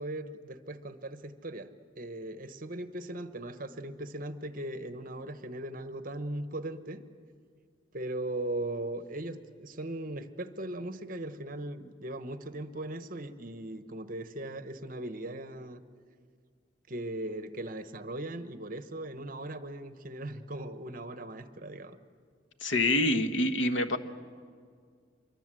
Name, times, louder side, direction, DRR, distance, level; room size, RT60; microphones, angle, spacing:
voice 1, 0.0-1.7 2.0-7.0 7.9-15.8 16.9-22.0, right 1 dB, 45° right, 10 dB, 1.1 m, -38 dB
voice 2, 22.6-24.0, left 1 dB, 85° left, 9 dB, 1.3 m, -26 dB
26.0 x 23.5 x 7.6 m, 2.1 s
head